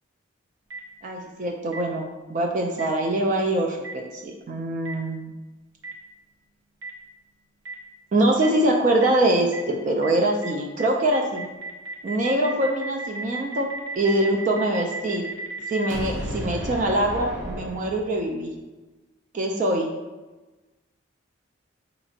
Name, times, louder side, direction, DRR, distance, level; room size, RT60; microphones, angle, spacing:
Boom, 0.7-0.8 1.7-1.8 2.8-2.9 3.8-3.9 4.8-4.9 5.8-5.9 6.8-6.9 7.6-7.7 8.4-8.5 9.0-9.1 9.5-9.6 10.0-10.1 10.4-10.5 10.8-18.3, right 2 dB, 70° right, 0.7 m, -34 dB
voice 1, 1.0-5.3 8.1-11.5 12.0-13.7 14.0-15.2 15.7-18.5 19.3-19.9, right 1 dB, 40° right, 1 dB, 0.3 m, -23 dB
4.2 x 2.9 x 2.7 m, 1.2 s
head